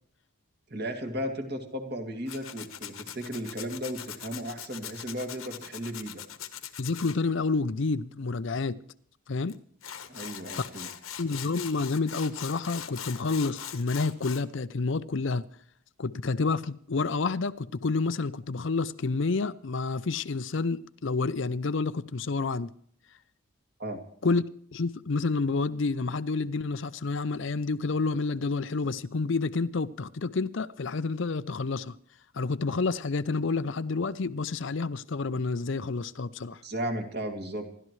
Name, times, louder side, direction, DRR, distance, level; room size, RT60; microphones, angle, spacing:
voice 1, 0.7-6.2 10.1-10.9 23.8-24.0 36.6-37.6, equal, 50° right, 2.4 m, -35 dB
Tools, 2.3-7.2 9.5-9.6 9.8-14.4, left 9 dB, 75° left, 1.2 m, -41 dB
voice 2, 6.8-8.8 9.3-9.6 10.5-10.6 11.2-15.4 16.0-22.7 24.2-32.0 32.3-36.6, left 4 dB, 55° left, 0.5 m, -29 dB
27.5 x 12.0 x 3.2 m
head